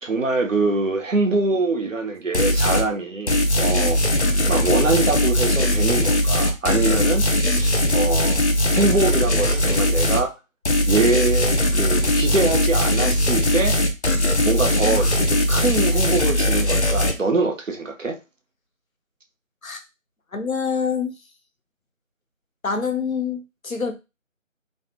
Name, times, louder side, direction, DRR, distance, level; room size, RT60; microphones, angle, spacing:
voice 1, 0.0-4.0 4.5-8.4 8.7-10.3 10.9-13.8 14.4-18.2, right 3 dB, 70° right, 0.8 m, -24 dB
sound 1, 2.3-2.9 3.3-10.3 10.7-17.1, left 1 dB, 55° left, 0.6 m, -20 dB
voice 2, 14.8-15.2 19.6-19.8 20.3-21.1 22.6-23.9, left 5 dB, 90° left, 0.9 m, -26 dB
3.2 x 2.1 x 2.9 m
figure-of-eight pair, 175°, 40 cm